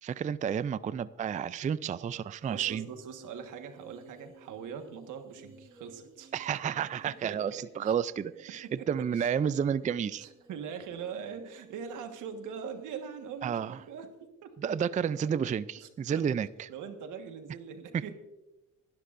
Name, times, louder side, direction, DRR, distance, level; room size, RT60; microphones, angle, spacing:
voice 1, 0.0-2.9 6.3-10.3 13.4-13.7 14.6-16.7, right 8 dB, 25° right, 16 dB, 0.3 m, -31 dB
sound 1, 2.4-14.0, right 4 dB, 40° right, 2.7 m, -58 dB
voice 2, 2.5-6.3 7.0-7.9 8.5-9.3 10.2-14.6 15.8-16.3 16.7-18.1, right 7 dB, 85° right, 7 dB, 1.5 m, -42 dB
26.5 x 11.5 x 2.6 m, 1.0 s
cardioid pair, 90°, 30 cm